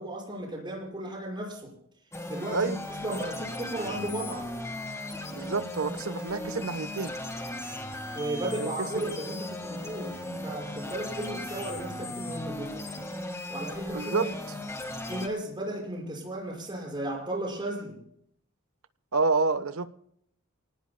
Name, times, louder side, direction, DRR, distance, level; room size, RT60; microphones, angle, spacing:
voice 1, 0.0-1.7 2.3-2.7 3.0-4.5 8.1-12.8 13.5-14.3 15.1-18.0, right 1 dB, 20° right, -2 dB, 5.9 m, -35 dB
sound 1, 2.1-15.3, left 1 dB, 15° left, 1.6 m, -37 dB
voice 2, 2.5-2.8 5.3-7.1 8.6-9.0 13.9-14.3 19.1-19.9, right 4 dB, 75° right, 12 dB, 1.0 m, -28 dB
29.0 x 19.0 x 2.2 m, 0.71 s
head